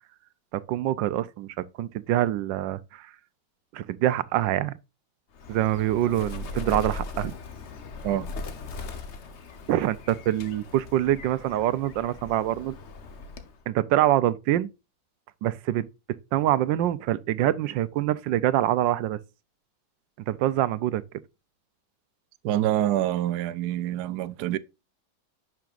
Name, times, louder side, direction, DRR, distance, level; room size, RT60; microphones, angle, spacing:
voice 1, 0.5-3.1 3.7-4.7 5.5-7.3 9.7-12.8 13.7-14.7 15.4-15.9 16.3-19.2 20.3-21.0, right 13 dB, 85° right, 1.3 m, -25 dB
Bird, 5.3-13.6, left 3 dB, 45° left, 1.1 m, -39 dB
voice 2, 22.4-24.6, right 13 dB, 70° right, 1.1 m, -26 dB
10.5 x 6.1 x 2.4 m
omnidirectional pair, 1.9 m